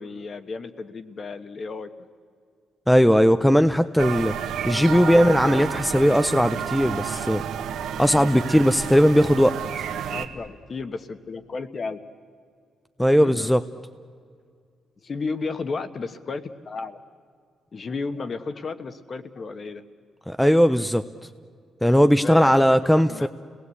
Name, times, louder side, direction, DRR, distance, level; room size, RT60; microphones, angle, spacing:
voice 1, 0.0-1.9 4.9-5.8 6.1-6.2 10.1-12.0 13.2-13.5 15.0-17.0 17.7-19.8 22.1-23.3, left 4 dB, 35° left, 10 dB, 1.3 m, -33 dB
voice 2, 2.9-4.3 4.6-7.4 8.0-9.5 13.0-13.6 20.3-21.0 21.8-23.3, equal, ahead, 9 dB, 0.6 m, -18 dB
sound 1, 4.0-10.3, right 8 dB, 90° right, 1.5 m, -30 dB
30.0 x 19.0 x 8.4 m, 2.2 s
cardioid pair, 135°, 0 cm